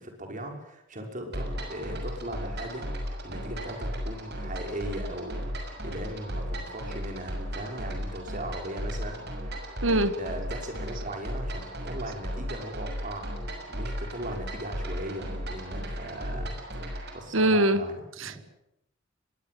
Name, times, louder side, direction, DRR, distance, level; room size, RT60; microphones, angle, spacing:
voice 1, 0.0-9.2 9.5-16.5 16.9-18.4, right 1 dB, 40° right, 3 dB, 6.0 m, -39 dB
sound 1, 1.3-17.2, equal, 55° right, 6.5 m, -35 dB
voice 2, 9.8-10.1 17.3-17.8 18.2-18.4, right 1 dB, 85° right, 13 dB, 1.8 m, -22 dB
24.5 x 22.0 x 7.8 m, 0.83 s
head